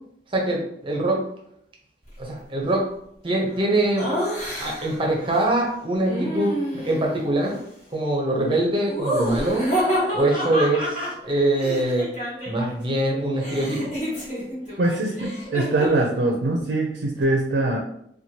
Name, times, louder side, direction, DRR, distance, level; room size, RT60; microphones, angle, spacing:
voice 1, 0.3-1.3 2.2-2.9 3.2-4.1 4.6-7.6 7.9-9.7 10.1-12.1 12.5-13.9, right 1 dB, 30° right, 0 dB, 0.7 m, -23 dB
Laughter, 4.0-5.0 6.0-7.1 8.9-12.8 13.0-16.1, equal, 40° left, 1.4 m, -28 dB
voice 2, 14.8-17.8, right 2 dB, 75° right, 0 dB, 0.5 m, -23 dB
3.0 x 2.3 x 2.7 m, 0.71 s
head